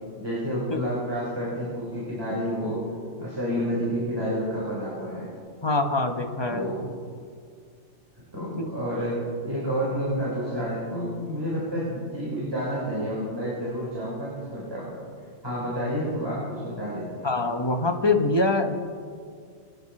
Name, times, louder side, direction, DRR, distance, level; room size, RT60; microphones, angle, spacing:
voice 1, 0.2-2.8 3.2-5.3 6.5-6.8 8.3-15.0 15.4-17.2, equal, 15° right, -7 dB, 4.0 m, -29 dB
voice 2, 5.6-6.7 8.6-8.7 17.2-18.8, left 2 dB, 20° left, 4 dB, 0.9 m, -24 dB
24.0 x 9.5 x 4.3 m, 2.1 s
omnidirectional pair, 1.5 m